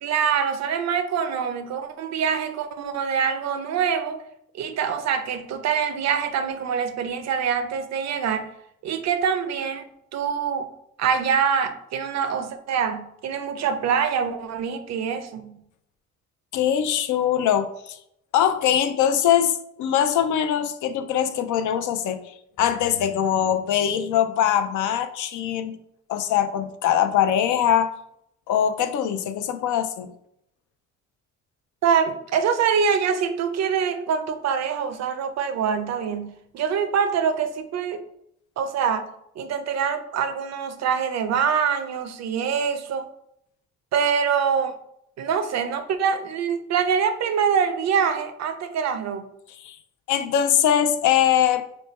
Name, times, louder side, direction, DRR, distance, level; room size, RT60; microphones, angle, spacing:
voice 1, 0.0-4.2 4.5-8.5 8.8-9.8 10.1-10.7 11.0-15.6 31.8-38.0 38.6-39.1 39.4-43.1 43.9-44.8 45.2-49.2, right 7 dB, 60° right, 9 dB, 0.5 m, -24 dB
voice 2, 16.5-18.0 18.3-22.2 22.6-25.8 26.1-27.9 28.5-30.1 49.6-49.8 50.1-51.6, left 9 dB, 80° left, 9 dB, 0.5 m, -22 dB
3.2 x 2.1 x 4.2 m, 0.75 s
cardioid pair, 90°, 30 cm